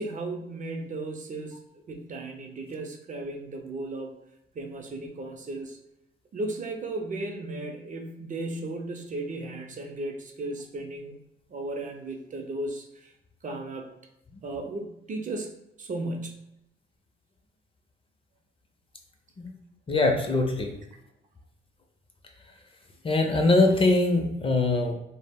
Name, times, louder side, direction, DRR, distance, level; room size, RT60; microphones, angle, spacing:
voice 1, 0.0-4.2 4.5-5.8 6.3-11.2 11.5-13.1 13.4-13.9 14.4-15.5 15.8-16.5, right 2 dB, 40° right, 3 dB, 0.4 m, -35 dB
voice 2, 19.9-20.7 23.0-24.9, left 2 dB, 25° left, 3 dB, 0.5 m, -22 dB
2.1 x 2.0 x 3.4 m, 0.85 s
cardioid pair, 90°, 20 cm